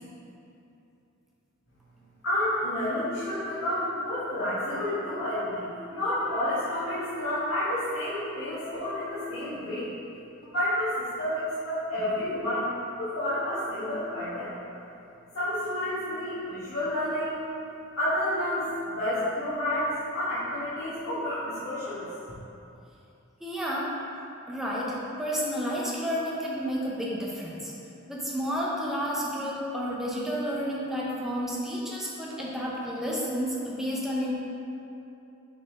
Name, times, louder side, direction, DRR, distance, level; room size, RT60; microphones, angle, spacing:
voice 1, 2.2-9.9 10.4-12.7 13.0-14.5 15.3-17.4 18.0-22.0, left 1 dB, 80° left, -14 dB, 1.5 m, -30 dB
voice 2, 23.4-24.0 24.5-27.7 28.1-34.3, equal, ahead, -5 dB, 0.8 m, -31 dB
6.5 x 4.1 x 3.6 m, 2.8 s
head